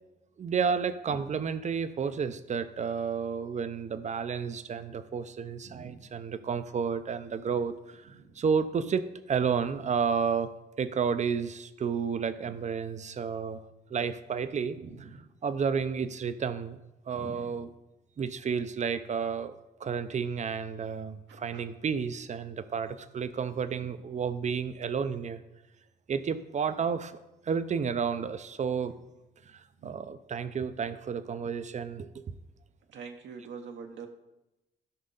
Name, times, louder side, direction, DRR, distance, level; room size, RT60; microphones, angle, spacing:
voice 1, 0.4-9.0 9.3-10.5 10.8-13.6 13.9-15.1 15.4-16.8 17.1-17.7 18.2-25.4 26.1-27.2 27.5-28.9 29.5-32.2, right 6 dB, 35° right, 12 dB, 0.6 m, -31 dB
voice 2, 5.6-6.0 8.1-8.4 12.5-12.6 14.8-15.3 17.1-17.4 21.3-21.6 29.8-30.0 32.9-34.1, right 5 dB, 70° right, 3 dB, 0.9 m, -45 dB
12.0 x 5.4 x 3.9 m, 0.97 s
cardioid pair, 90°, 20 cm